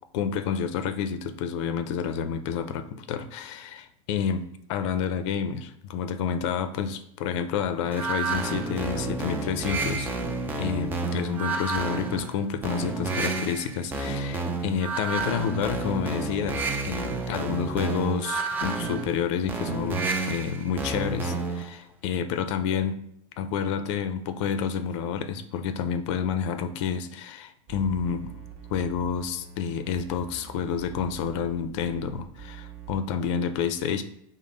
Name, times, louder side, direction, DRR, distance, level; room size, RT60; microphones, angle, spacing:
voice 1, 0.1-10.1 10.6-23.0 23.4-28.4 28.7-34.0, left 7 dB, 55° left, 10 dB, 0.5 m, -29 dB
sound 1, 7.9-21.7, right 3 dB, 10° right, 0.3 m, -30 dB
sound 2, 27.7-33.0, right 8 dB, 30° right, 0.7 m, -44 dB
5.2 x 2.0 x 3.8 m, 0.73 s
supercardioid pair, 155°, 18 cm